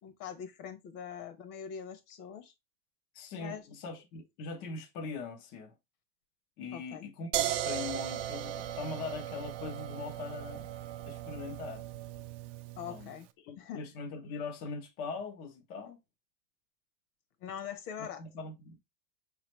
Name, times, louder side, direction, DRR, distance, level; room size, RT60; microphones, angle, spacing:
voice 1, 0.0-2.5 3.3-3.6 6.7-7.1 12.8-13.3 13.6-13.8 17.4-18.2, left 8 dB, 70° left, 1.2 m, -43 dB
voice 2, 3.1-5.7 6.6-10.7 11.1-11.8 12.8-13.1 13.4-16.0 18.2-18.8, left 4 dB, 25° left, 0.3 m, -41 dB
sound 1, 7.3-13.1, right 12 dB, 50° right, 0.5 m, -37 dB
4.8 x 3.1 x 3.0 m
supercardioid pair, 135°, 47 cm